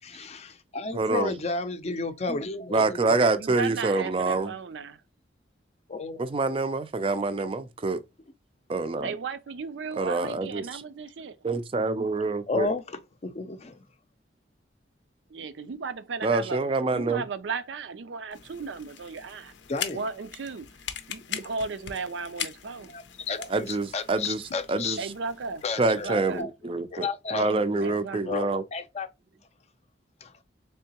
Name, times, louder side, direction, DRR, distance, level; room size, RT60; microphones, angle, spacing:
voice 1, 0.0-3.4 5.9-6.2 12.5-13.8 19.7-20.0 22.9-25.0 25.6-29.1 30.2-30.3, left 3 dB, 35° left, 0.5 m, -33 dB
voice 2, 0.9-1.3 2.3-2.4 2.7-4.5 6.2-8.0 8.7-9.1 10.0-10.8 11.4-12.7 16.2-17.2 23.5-24.4 24.7-25.1 25.8-28.6, right 3 dB, 30° right, 0.4 m, -26 dB
voice 3, 3.1-5.0 9.0-11.4 15.3-16.6 16.9-19.5 19.9-20.7 21.1-22.9 25.0-25.6 25.9-26.5 27.8-28.2, right 4 dB, 90° right, 0.5 m, -35 dB
sound 1, 18.3-26.4, left 9 dB, 85° left, 0.5 m, -41 dB
3.7 x 3.4 x 2.8 m
head